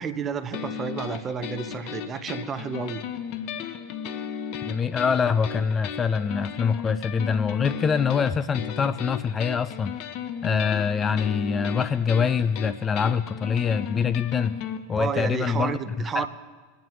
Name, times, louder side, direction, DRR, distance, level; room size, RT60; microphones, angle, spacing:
voice 1, 0.0-3.0 15.0-16.3, right 6 dB, 30° right, 11 dB, 0.7 m, -30 dB
sound 1, 0.5-14.8, left 8 dB, 55° left, 0.8 m, -35 dB
voice 2, 4.6-9.9 10.4-14.5 14.9-15.8 16.1-16.3, left 6 dB, 25° left, 15 dB, 0.4 m, -24 dB
23.5 x 9.3 x 3.1 m, 1.4 s
hypercardioid pair, 105°, 0 cm